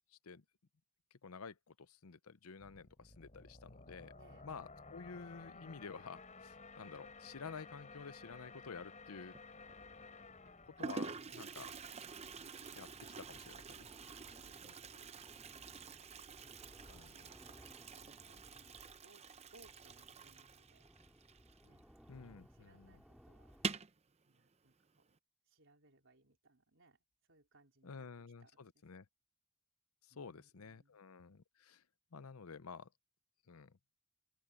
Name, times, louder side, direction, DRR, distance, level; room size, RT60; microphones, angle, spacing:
voice 1, 1.2-4.1 4.4-9.4 10.8-11.7 12.7-12.9 13.2-13.9 14.6-14.7 16.9-17.1 22.1-23.0 27.8-29.1 30.0-31.8 32.1-32.9 33.5-33.8, left 5 dB, 75° left, 0.7 m, -51 dB
sound 1, 2.6-12.1, left 3 dB, 35° left, 3.8 m, -55 dB
voice 2, 4.1-4.5 11.2-11.5 14.0-15.1 16.0-16.6 16.8-19.3 19.5-20.8 21.6-21.9 22.2-23.6 24.3-25.2 25.5-27.0 27.3-28.1 28.4-28.8 30.1-31.0, right 2 dB, 60° right, 4.0 m, -68 dB
Toilet flush, 9.3-9.7 10.5-10.6 10.8-22.1 22.3-22.4 22.7-22.8 23.5-24.0, right 5 dB, 30° right, 0.7 m, -47 dB
sound 2, 9.6-23.7, equal, ahead, 3.5 m, -63 dB
open air
head